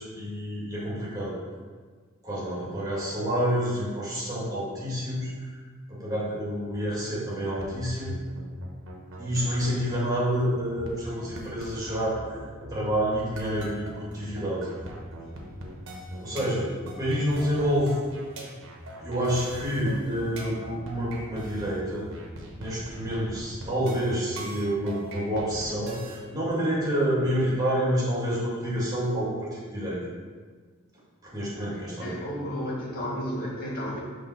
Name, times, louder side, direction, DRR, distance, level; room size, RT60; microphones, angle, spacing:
voice 1, 0.0-1.4 2.2-5.6 5.9-8.2 9.2-12.4 12.7-14.7 16.2-16.7 17.0-18.0 19.0-22.1 22.6-30.0 31.2-32.2, equal, 15° right, -7 dB, 1.8 m, -28 dB
sound 1, 7.6-26.2, right 1 dB, 60° right, 1.0 m, -40 dB
voice 2, 31.7-34.0, equal, 45° left, -5 dB, 1.6 m, -33 dB
5.3 x 3.4 x 5.7 m, 1.5 s
head